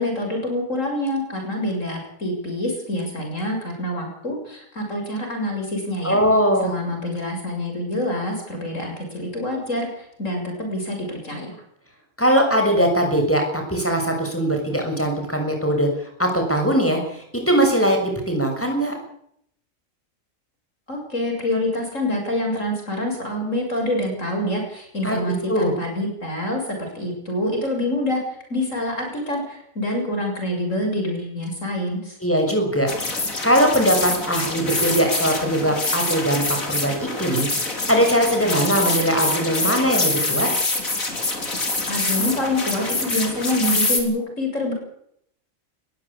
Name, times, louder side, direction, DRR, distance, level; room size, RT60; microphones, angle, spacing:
voice 1, 0.0-6.2 6.6-11.6 20.9-28.2 28.5-32.2 41.9-44.7, left 1 dB, 70° left, 2 dB, 7.6 m, -26 dB
voice 2, 6.0-6.7 12.2-15.9 16.2-18.9 25.0-25.2 25.5-25.7 32.2-32.9 33.4-40.5, equal, 10° left, 3 dB, 6.6 m, -20 dB
sound 1, 32.9-44.0, left 2 dB, 90° left, 4.3 m, -25 dB
21.0 x 15.5 x 8.7 m, 0.71 s
omnidirectional pair, 1.4 m